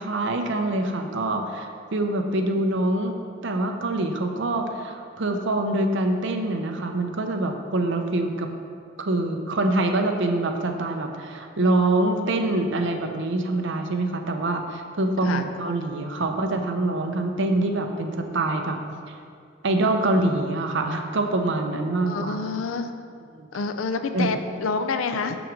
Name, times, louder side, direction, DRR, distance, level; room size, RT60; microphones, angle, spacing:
voice 1, 0.0-3.2 3.4-8.5 9.0-18.8 19.6-22.4 23.4-23.5 24.1-24.3, right 2 dB, 65° right, 4 dB, 0.7 m, -25 dB
voice 2, 22.1-22.9 23.5-25.4, left 4 dB, 85° left, 8 dB, 0.5 m, -27 dB
6.1 x 6.1 x 5.2 m, 2.3 s
head